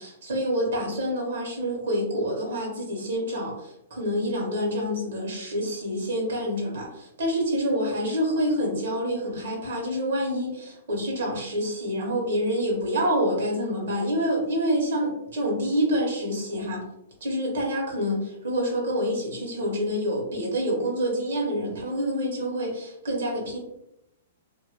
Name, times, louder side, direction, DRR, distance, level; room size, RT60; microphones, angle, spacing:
voice 1, 0.0-16.9 17.2-23.6, equal, 80° right, -1 dB, 1.0 m, -27 dB
2.5 x 2.0 x 3.0 m, 0.80 s
hypercardioid pair, 150°, 0 cm